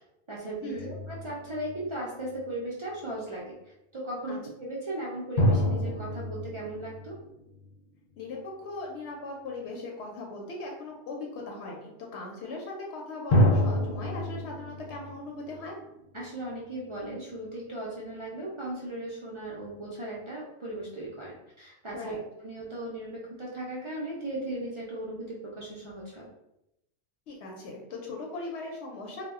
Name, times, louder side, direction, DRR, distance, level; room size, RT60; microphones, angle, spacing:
voice 1, 0.3-3.6 3.9-7.2 16.1-22.2 22.4-26.3, right 1 dB, 55° right, -6 dB, 0.3 m, -37 dB
sound 1, 0.7-2.4 5.4-8.1 13.3-16.3, left 1 dB, 55° left, 0.7 m, -28 dB
voice 2, 8.2-15.7 21.9-22.2 27.3-29.3, left 2 dB, 85° left, 0 dB, 0.9 m, -39 dB
2.1 x 2.1 x 3.5 m, 0.84 s
omnidirectional pair, 1.1 m